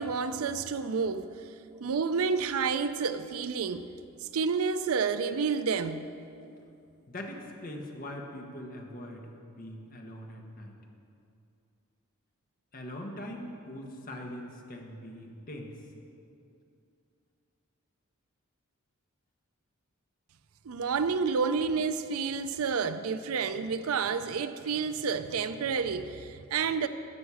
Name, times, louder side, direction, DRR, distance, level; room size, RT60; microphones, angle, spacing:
voice 1, 0.0-1.3 1.8-3.9 4.3-6.1 20.6-26.9, right 5 dB, 75° right, 0.5 m, -29 dB
voice 2, 7.1-10.7 12.7-15.8, left 1 dB, 40° left, 1.3 m, -42 dB
12.5 x 9.0 x 4.9 m
head